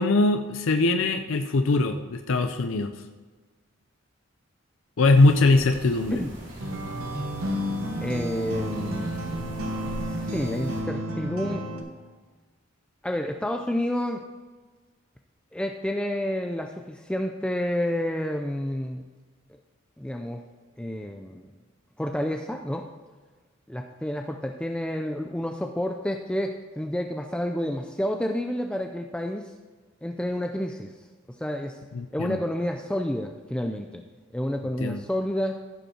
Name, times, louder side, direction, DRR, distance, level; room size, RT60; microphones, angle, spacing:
voice 1, 0.0-2.9 5.0-6.2 31.9-32.4 34.8-35.0, left 2 dB, 70° left, 7 dB, 0.5 m, -21 dB
sound 1, 5.1-10.8, right 1 dB, 60° right, 3.2 m, -41 dB
sound 2, 6.6-11.8, equal, 90° right, 1.4 m, -31 dB
voice 2, 8.0-9.1 9.9-11.7 13.0-14.2 15.5-19.0 20.0-20.4 20.8-21.5 22.0-22.9 23.7-29.5 30.0-30.9 31.3-31.8 32.1-34.0 34.3-35.6, left 1 dB, 5° left, 3 dB, 0.4 m, -29 dB
15.5 x 5.4 x 4.4 m, 1.4 s
head